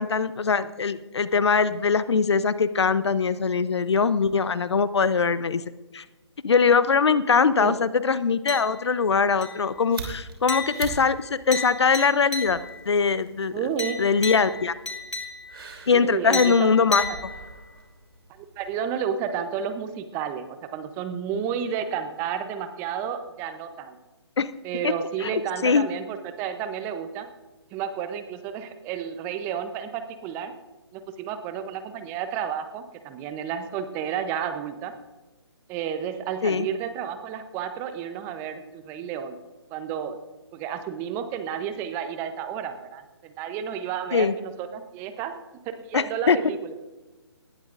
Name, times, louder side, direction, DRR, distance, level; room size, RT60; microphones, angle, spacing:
voice 1, 0.0-5.6 5.9-6.0 6.4-12.6 12.9-13.6 14.0-14.7 15.9-17.1 24.4-24.5 24.8-24.9 25.2-25.9 36.4-36.7 44.1-44.3 45.9-46.4, left 5 dB, 70° left, 15 dB, 0.7 m, -22 dB
sound 1, 8.5-9.0 9.4-9.8 10.5-12.9 13.8-15.7 16.3-17.8, left 4 dB, 90° left, 2.9 m, -34 dB
sound 2, 9.5-18.7, right 4 dB, 60° right, 3.1 m, -43 dB
voice 2, 13.5-14.0 15.9-16.7 17.1-17.2 18.4-24.0 24.6-27.3 27.7-30.5 30.9-34.9 35.7-39.4 39.7-40.2 40.5-45.3 45.9-46.7, right 8 dB, 15° right, 9 dB, 0.7 m, -31 dB
19.5 x 11.5 x 2.5 m, 1.2 s
figure-of-eight pair, 145°, 15 cm